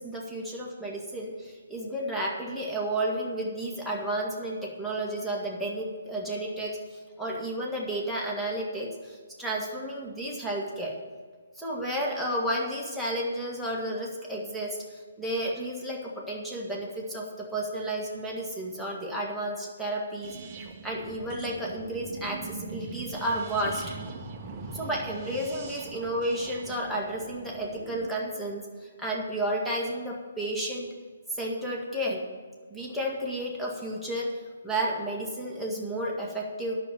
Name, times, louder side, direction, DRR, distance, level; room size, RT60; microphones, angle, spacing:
voice 1, 0.0-10.9 11.6-20.4 20.8-23.8 24.7-30.9 31.3-32.2 32.7-34.3 34.6-36.8, right 1 dB, ahead, -5 dB, 1.8 m, -32 dB
sound 1, 20.2-28.1, right 4 dB, 25° right, 1.1 m, -41 dB
9.6 x 6.8 x 8.7 m, 1.5 s
figure-of-eight pair, 135°, 0 cm